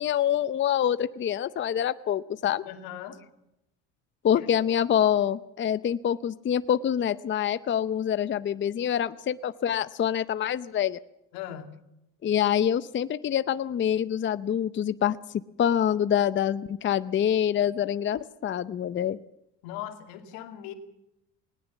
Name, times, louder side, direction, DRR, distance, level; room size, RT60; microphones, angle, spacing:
voice 1, 0.0-2.6 4.2-11.0 12.2-15.2 15.6-19.2, left 9 dB, 30° left, 14 dB, 0.6 m, -26 dB
voice 2, 2.6-3.2 4.4-4.5 11.3-11.7 19.6-20.7, left 11 dB, 85° left, 6 dB, 2.6 m, -39 dB
19.5 x 18.5 x 7.2 m, 0.84 s
supercardioid pair, 100°, 36 cm